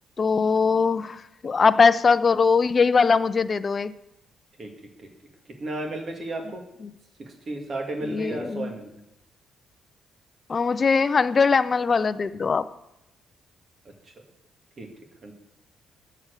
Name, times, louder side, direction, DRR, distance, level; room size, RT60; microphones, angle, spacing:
voice 1, 0.2-3.9 6.8-6.9 8.0-8.7 10.5-12.7, left 5 dB, 35° left, 13 dB, 0.5 m, -21 dB
voice 2, 5.6-6.6 7.2-9.0 14.8-14.9 15.2-15.3, right 2 dB, 45° right, 4 dB, 2.0 m, -33 dB
7.4 x 7.2 x 6.6 m, 0.86 s
cardioid pair, 90°, 0 cm